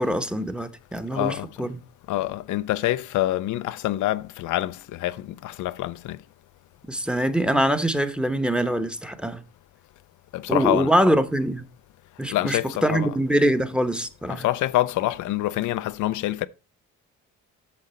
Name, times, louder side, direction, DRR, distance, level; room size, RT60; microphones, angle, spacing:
voice 1, 0.0-1.8 6.9-9.4 10.5-11.6 12.2-14.4, right 1 dB, 5° right, 0.9 m, -23 dB
voice 2, 1.1-1.7 2.1-6.2 10.3-10.9 12.3-13.1 14.3-16.5, left 15 dB, 80° left, 0.5 m, -26 dB
8.5 x 6.5 x 4.3 m
cardioid pair, 90°, 30 cm